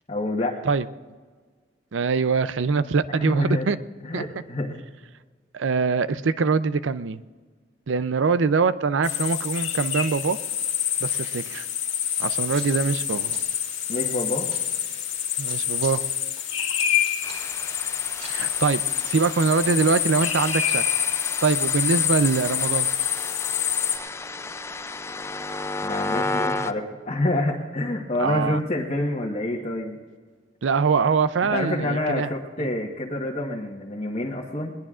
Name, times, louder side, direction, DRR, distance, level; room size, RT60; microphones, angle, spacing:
voice 1, 0.1-0.6 3.1-3.8 4.0-4.8 13.9-14.5 19.6-19.7 25.8-30.0 31.5-34.7, left 1 dB, 35° left, -2 dB, 1.3 m, -27 dB
voice 2, 1.9-3.8 4.1-4.2 5.5-7.2 7.9-10.4 11.0-11.6 12.2-13.4 15.4-16.0 18.3-20.8 21.4-22.9 28.2-28.6 30.6-32.3 32.6-32.7, right 5 dB, 90° right, 14 dB, 0.5 m, -23 dB
sound 1, 9.0-24.0, left 10 dB, 75° left, 1.9 m, -27 dB
sound 2, 12.0-18.6, right 3 dB, 40° right, 3.9 m, -45 dB
sound 3, 17.2-26.7, left 2 dB, 15° left, 0.4 m, -33 dB
21.0 x 20.5 x 2.5 m, 1.5 s
head